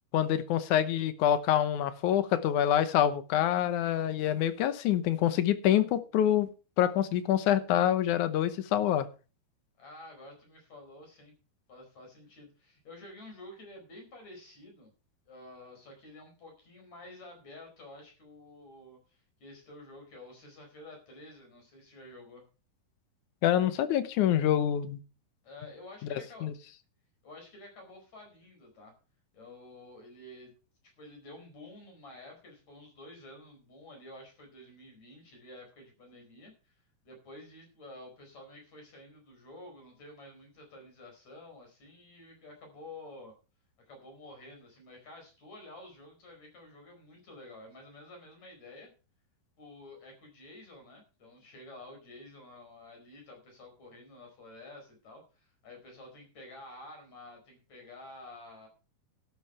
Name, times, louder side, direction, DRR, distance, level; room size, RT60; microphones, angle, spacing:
voice 1, 0.1-6.5 6.8-9.1 23.4-25.0 26.4-26.5, left 11 dB, 70° left, 12 dB, 2.0 m, -26 dB
voice 2, 9.8-11.3 11.7-14.9 15.3-22.4 25.4-26.5 27.2-28.9 29.3-30.5 31.0-36.7 37.0-43.3 43.9-48.9 49.6-58.7, left 2 dB, 45° left, 2 dB, 5.7 m, -50 dB
12.5 x 8.2 x 5.6 m, 0.34 s
omnidirectional pair, 4.4 m